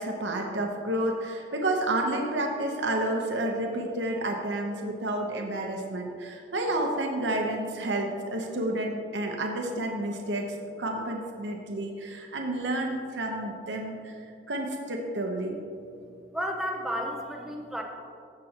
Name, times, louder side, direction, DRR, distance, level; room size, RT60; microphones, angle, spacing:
voice 1, 0.0-14.1 14.5-15.6, right 1 dB, 75° right, 1 dB, 0.9 m, -30 dB
voice 2, 16.3-17.8, equal, ahead, 1 dB, 0.6 m, -32 dB
15.5 x 6.8 x 2.9 m, 2.4 s
head